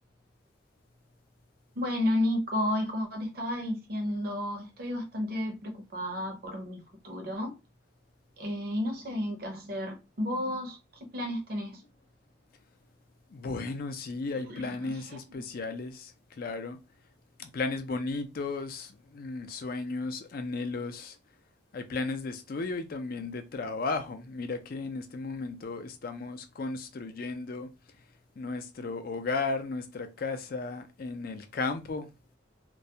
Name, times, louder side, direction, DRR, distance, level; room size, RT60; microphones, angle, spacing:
voice 1, 1.8-7.6 8.4-10.8 11.1-11.8 14.5-15.4, left 1 dB, 50° right, 0.6 m, -32 dB
voice 2, 13.3-16.8 17.4-21.2 21.7-27.7 28.4-32.1, left 3 dB, 50° left, 0.4 m, -35 dB
2.3 x 2.0 x 2.7 m
head